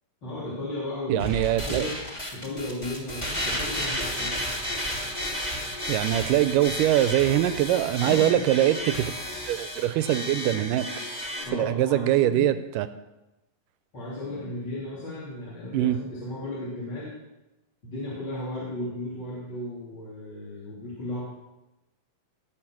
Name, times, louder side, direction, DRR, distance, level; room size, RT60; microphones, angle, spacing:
voice 1, 0.2-1.4 1.7-2.0 2.3-4.4 8.0-8.4 11.4-12.5 13.9-17.1 17.8-21.2, left 1 dB, 35° left, -8 dB, 3.3 m, -35 dB
voice 2, 1.1-1.9 5.9-9.1 9.5-10.9 11.5-12.9 15.7-16.0, right 13 dB, 80° right, 12 dB, 2.1 m, -23 dB
sound 1, 1.2-11.4, equal, 15° left, 1.8 m, -32 dB
17.5 x 7.2 x 5.9 m, 1.0 s
omnidirectional pair, 4.0 m